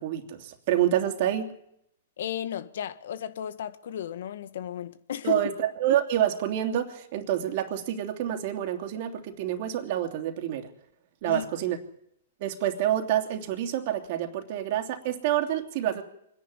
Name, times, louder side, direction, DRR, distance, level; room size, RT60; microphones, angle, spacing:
voice 1, 0.0-1.5 5.2-10.7 11.2-11.8 12.4-16.0, right 11 dB, 50° right, 2.9 m, -27 dB
voice 2, 2.2-5.5 11.2-11.5, left 9 dB, 70° left, 1.6 m, -34 dB
25.0 x 11.0 x 10.0 m
hypercardioid pair, 125°, 0 cm